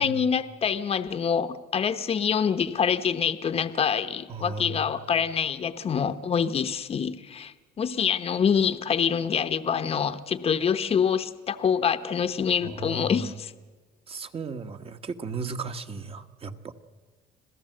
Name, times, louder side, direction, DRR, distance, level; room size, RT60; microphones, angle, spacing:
voice 1, 0.0-13.5, left 7 dB, 35° left, 10 dB, 0.9 m, -26 dB
voice 2, 4.3-4.9 12.6-13.2 14.1-16.7, right 3 dB, 35° right, 8 dB, 1.3 m, -35 dB
26.5 x 16.5 x 7.7 m, 1.4 s
cardioid pair, 110°, 17 cm